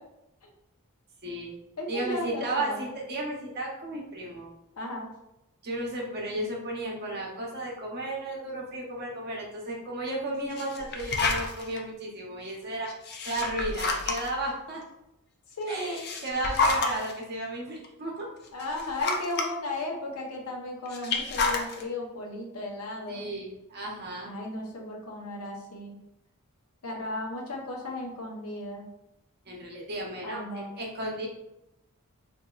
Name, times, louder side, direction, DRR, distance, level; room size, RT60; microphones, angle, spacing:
voice 1, 1.2-1.5 1.9-4.5 5.6-12.9 13.2-14.8 15.7-18.3 23.1-24.3 29.5-31.3, right 1 dB, 45° right, -2 dB, 0.8 m, -34 dB
voice 2, 1.8-2.8 4.8-5.1 15.6-16.0 18.5-23.3 24.2-25.9 26.8-28.9 30.2-30.7, left 1 dB, 75° left, 0 dB, 0.8 m, -35 dB
sound 1, 10.5-11.8 12.9-14.4 15.7-17.1 17.8-17.9 18.5-19.5 20.9-21.8, left 3 dB, 45° left, 0.4 m, -29 dB
4.0 x 2.6 x 2.3 m, 0.88 s
head